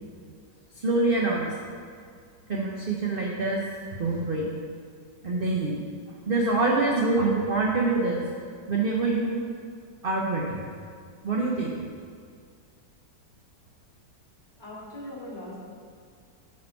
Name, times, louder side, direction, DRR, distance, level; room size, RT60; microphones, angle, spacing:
voice 1, 0.8-1.7 2.5-3.6 4.0-4.5 5.2-5.8 6.3-8.2 8.7-9.4 10.0-10.6 11.2-11.8, right 3 dB, 40° right, -2 dB, 0.8 m, -25 dB
voice 2, 14.6-15.6, left 1 dB, 20° left, -9 dB, 2.8 m, -40 dB
10.0 x 5.2 x 5.8 m, 2.1 s
omnidirectional pair, 1.9 m